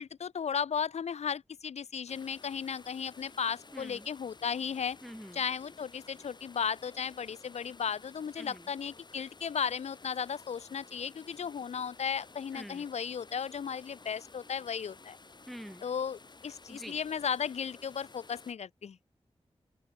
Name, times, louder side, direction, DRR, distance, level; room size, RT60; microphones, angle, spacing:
voice 1, 0.0-5.0 5.3-15.2 15.8-19.0, left 7 dB, 80° left, 0.6 m, -35 dB
sound 1, 2.1-18.5, left 3 dB, 40° left, 4.1 m, -54 dB
voice 2, 3.7-4.1 5.0-5.4 8.4-8.7 12.5-12.9 15.5-15.8 16.7-17.0, equal, ahead, 0.6 m, -46 dB
open air
wide cardioid pair, 125°, 11 cm